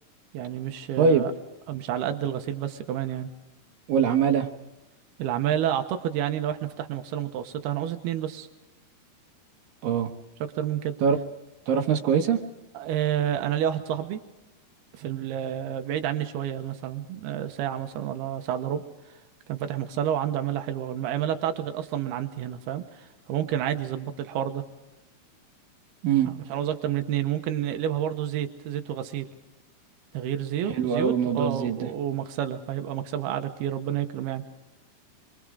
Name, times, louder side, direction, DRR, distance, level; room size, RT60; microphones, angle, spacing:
voice 1, 0.3-1.3 1.7-3.3 5.2-8.5 10.6-10.9 12.7-14.2 15.0-18.8 19.5-24.6 26.2-29.3 30.1-34.4, right 10 dB, 90° right, 7 dB, 3.1 m, -29 dB
voice 2, 1.0-1.3 3.9-4.5 9.8-10.1 11.0-11.2 11.7-12.4 26.0-26.3 30.7-31.8, right 6 dB, 70° right, 5 dB, 2.7 m, -22 dB
26.5 x 23.5 x 4.9 m, 1.0 s
omnidirectional pair, 4.5 m